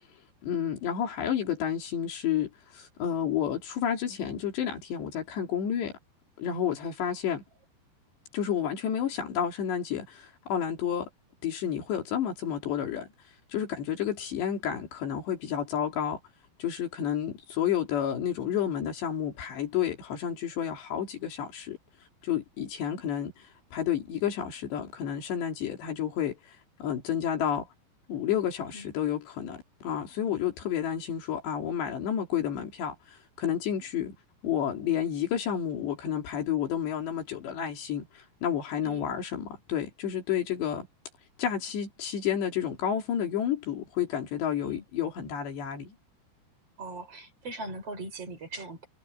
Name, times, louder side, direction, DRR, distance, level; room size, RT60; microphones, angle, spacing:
voice 1, 0.4-5.9 6.4-7.4 8.3-11.1 11.4-13.1 13.5-16.2 16.6-21.8 22.2-27.7 28.1-34.1 34.4-40.9 41.4-46.0, left 9 dB, 80° left, 5.3 m, -30 dB
voice 2, 46.8-48.9, right 2 dB, 35° right, 6.8 m, -40 dB
omnidirectional pair, 4.9 m